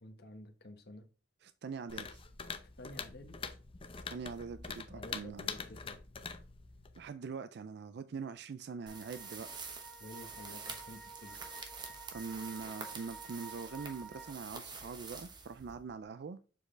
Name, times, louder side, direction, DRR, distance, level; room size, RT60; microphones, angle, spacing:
voice 1, 0.0-1.1 2.8-3.4 4.9-6.0 10.0-11.4, left 1 dB, 60° left, 1.0 m, -51 dB
voice 2, 1.4-2.2 4.0-5.5 7.0-9.7 12.1-16.4, right 5 dB, 65° right, 0.4 m, -43 dB
sound 1, 1.9-7.1, left 5 dB, 30° left, 0.6 m, -44 dB
sound 2, 8.8-14.3, right 3 dB, 5° left, 0.9 m, -52 dB
sound 3, 8.9-16.0, right 4 dB, 25° right, 1.1 m, -47 dB
7.2 x 4.4 x 3.2 m
head